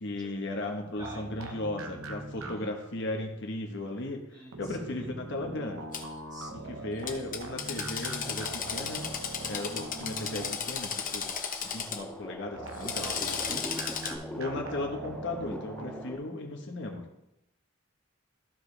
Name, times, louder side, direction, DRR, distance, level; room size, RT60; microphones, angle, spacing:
voice 1, 0.0-4.2 4.6-5.9 6.5-11.3 11.6-13.7 14.3-17.1, left 2 dB, 60° left, 3 dB, 1.2 m, -36 dB
voice 2, 1.0-1.6 2.3-2.7 4.3-4.6 6.3-7.0 13.0-14.1, right 2 dB, 20° right, -1 dB, 1.7 m, -49 dB
sound 1, 1.0-2.9 4.5-10.9 12.6-16.0, right 2 dB, 80° right, 1.0 m, -42 dB
Drill, 5.9-6.0 7.1-12.0 12.7-14.1, left 6 dB, 45° left, 1.0 m, -35 dB
sound 2, 8.2-16.2, left 1 dB, 5° left, 0.6 m, -45 dB
13.5 x 4.9 x 3.3 m, 0.85 s
head